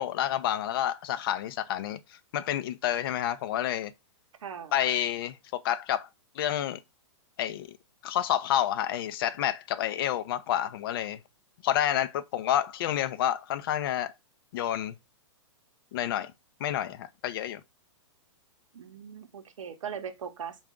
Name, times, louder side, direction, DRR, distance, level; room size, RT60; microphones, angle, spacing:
voice 1, 0.0-2.0 2.3-3.9 4.7-6.1 6.4-6.8 7.4-7.8 8.0-11.2 11.6-14.1 14.5-14.9 15.9-16.3 16.6-17.6, left 11 dB, 45° left, 0.4 m, -29 dB
voice 2, 4.4-4.7 18.7-20.6, right 7 dB, 80° right, 0.8 m, -39 dB
3.7 x 2.3 x 3.5 m
hypercardioid pair, 145°, 16 cm